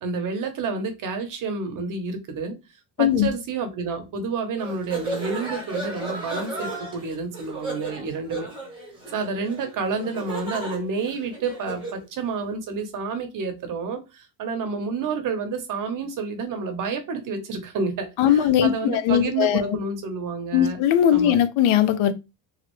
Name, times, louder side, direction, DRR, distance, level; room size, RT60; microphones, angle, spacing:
voice 1, 0.0-2.5 3.0-8.5 9.1-20.8 21.1-21.3, right 4 dB, 45° right, 0.8 m, -29 dB
voice 2, 3.0-3.3 18.2-19.8 20.5-22.1, left 10 dB, 85° left, 0.6 m, -19 dB
sound 1, 4.6-12.0, right 2 dB, 10° right, 0.9 m, -34 dB
3.0 x 2.4 x 3.0 m
cardioid pair, 170°, 46 cm